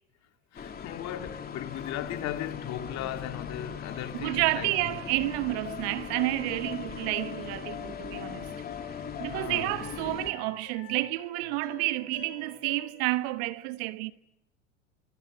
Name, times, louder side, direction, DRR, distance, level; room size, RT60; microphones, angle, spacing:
voice 1, 0.5-4.9 9.3-9.7, left 12 dB, 45° left, 2.5 m, -37 dB
sound 1, 0.5-10.3, left 6 dB, 25° left, 3.4 m, -40 dB
voice 2, 4.1-8.5 9.2-14.1, right 20 dB, 55° right, 1.3 m, -30 dB
sound 2, 4.7-12.9, left 10 dB, 65° left, 4.4 m, -45 dB
28.0 x 24.5 x 8.4 m
hypercardioid pair, 85°, 38 cm